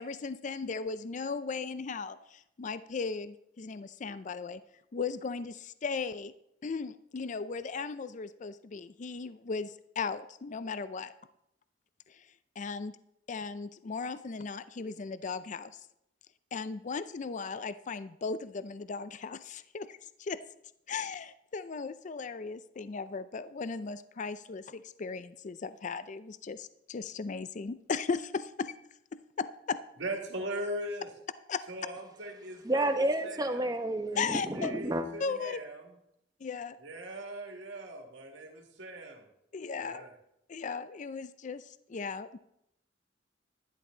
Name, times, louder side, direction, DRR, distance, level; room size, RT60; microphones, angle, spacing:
voice 1, 0.0-4.6 4.9-6.3 6.6-11.1 12.1-12.9 13.3-15.8 16.5-20.4 20.9-28.7 29.1-29.8 31.5-31.6 34.2-34.7 35.2-35.6 36.4-36.8 39.5-40.1 40.5-42.4, left 5 dB, 45° left, 14 dB, 0.4 m, -37 dB
voice 2, 30.0-31.1 31.7-32.9 33.2-33.6 34.1-36.0 36.8-39.3 39.7-40.1, right 1 dB, 85° right, 2 dB, 2.1 m, -40 dB
voice 3, 32.6-35.1, right 1 dB, 20° right, 7 dB, 0.9 m, -30 dB
12.0 x 11.0 x 3.9 m, 0.80 s
head